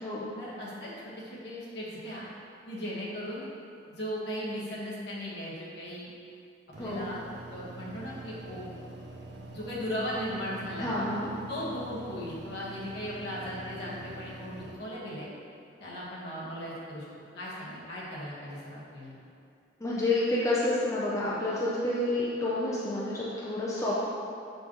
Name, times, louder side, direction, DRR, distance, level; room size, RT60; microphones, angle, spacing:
voice 1, 0.4-2.2 2.7-3.4 4.0-6.1 6.8-7.2 7.5-8.7 9.5-11.0 11.5-15.3 15.8-17.1 17.3-19.1, equal, 60° left, -7 dB, 1.5 m, -37 dB
sound 1, 6.7-14.7, right 2 dB, 60° right, 0.7 m, -45 dB
voice 2, 10.8-11.3 19.8-24.1, left 2 dB, 15° left, -7 dB, 0.6 m, -29 dB
6.0 x 5.3 x 3.0 m, 2.5 s
head